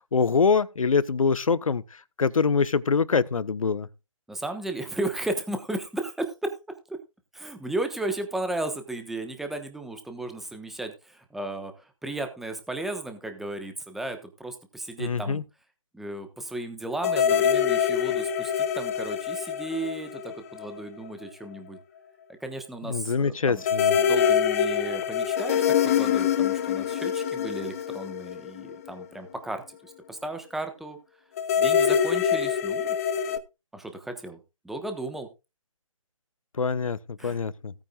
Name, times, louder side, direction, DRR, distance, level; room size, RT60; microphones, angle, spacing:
voice 1, 0.1-1.8 2.2-3.9 15.0-15.4 22.8-24.0 36.6-37.7, left 5 dB, 75° left, 1.0 m, -24 dB
voice 2, 4.3-6.5 6.9-7.0 7.3-15.4 15.9-21.8 22.3-23.6 24.0-31.0 31.6-33.0 33.7-34.4 34.6-35.3 37.2-37.4, right 2 dB, ahead, 1.2 m, -35 dB
sound 1, 17.0-20.8 21.0-21.1 23.6-29.0 31.4-33.4, left 8 dB, 25° left, 0.8 m, -25 dB
17.5 x 9.1 x 2.4 m
figure-of-eight pair, 155°, 18 cm